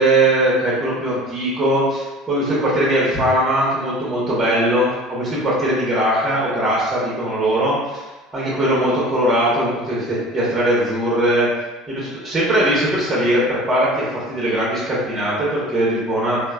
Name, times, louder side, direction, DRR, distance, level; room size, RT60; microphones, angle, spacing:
voice 1, 0.0-8.0 8.3-11.5 11.9-16.4, right 1 dB, 25° right, -7 dB, 1.0 m, -20 dB
2.9 x 2.1 x 2.3 m, 1.2 s
hypercardioid pair, 80°, 0 cm